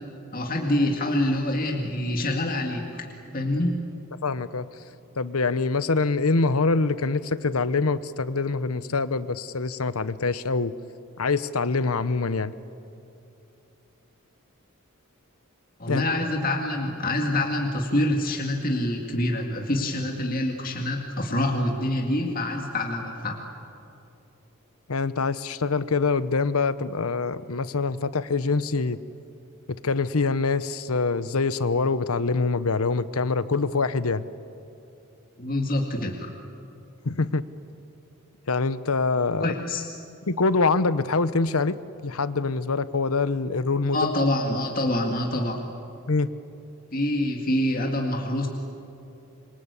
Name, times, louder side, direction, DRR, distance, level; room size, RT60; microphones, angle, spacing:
voice 1, 0.3-3.0 3.3-3.8 15.8-23.4 35.4-36.3 39.4-39.8 43.9-45.6 46.9-48.5, left 1 dB, 40° left, 1 dB, 2.1 m, -26 dB
voice 2, 4.2-4.7 5.2-10.7 11.2-12.5 15.9-16.0 24.9-29.0 29.8-34.2 37.0-37.4 38.5-39.5 40.3-41.8 42.0-44.1 46.1-46.3, left 4 dB, 85° left, 15 dB, 0.9 m, -24 dB
26.5 x 24.5 x 8.3 m, 2.8 s
head